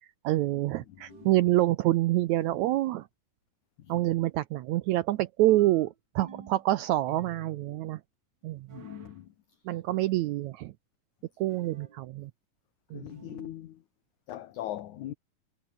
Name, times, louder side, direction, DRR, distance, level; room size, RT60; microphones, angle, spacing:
voice 1, 0.2-3.1 3.9-8.0 8.4-8.8 9.6-10.7 11.4-12.3 12.9-13.0, right 16 dB, 80° right, 1.6 m, -27 dB
sound 1, 1.1-1.6 2.3-2.8 5.5-6.7 7.1-7.7 8.7-9.2 11.5-12.0 13.1-13.6, right 6 dB, 35° right, 2.2 m, -49 dB
voice 2, 8.7-9.3 12.9-13.8 14.3-15.1, left 13 dB, 65° left, 2.5 m, -40 dB
omnidirectional pair, 4.0 m